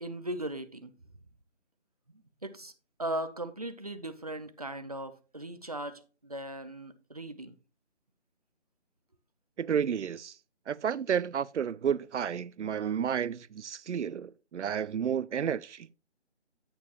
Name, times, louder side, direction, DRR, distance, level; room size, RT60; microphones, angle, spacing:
voice 1, 0.0-0.9 2.4-2.7 3.0-7.5, right 1 dB, 35° right, 0.6 m, -38 dB
voice 2, 9.6-10.3 10.7-15.9, right 8 dB, 90° right, 0.5 m, -31 dB
8.8 x 8.6 x 2.9 m
figure-of-eight pair, 170°, 34 cm